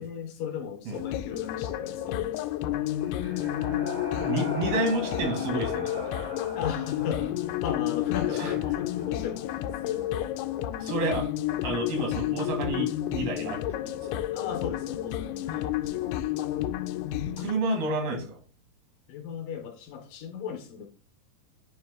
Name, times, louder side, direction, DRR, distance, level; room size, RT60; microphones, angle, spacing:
voice 1, 0.0-2.9 6.5-10.3 14.3-16.3 19.1-20.9, left 8 dB, 70° left, 2.4 m, -37 dB
sound 1, 0.9-17.5, left 13 dB, 90° left, 2.5 m, -31 dB
sound 2, 2.7-10.4, left 2 dB, 30° left, 0.4 m, -40 dB
voice 2, 4.1-6.3 8.4-8.5 10.8-11.3 11.6-14.2 17.4-18.4, right 2 dB, 75° right, 3.8 m, -30 dB
9.5 x 3.2 x 3.6 m
omnidirectional pair, 4.4 m